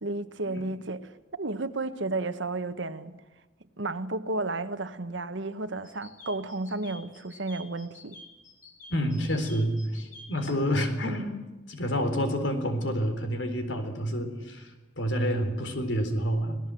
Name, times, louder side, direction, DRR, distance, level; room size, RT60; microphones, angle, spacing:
voice 1, 0.0-1.1 1.4-3.2 3.8-8.2, right 2 dB, 75° right, 1.4 m, -32 dB
sound 1, 5.8-10.5, left 2 dB, 45° left, 5.0 m, -48 dB
voice 2, 8.9-11.3 11.7-16.6, equal, 75° left, 4.0 m, -28 dB
26.5 x 18.5 x 7.8 m
head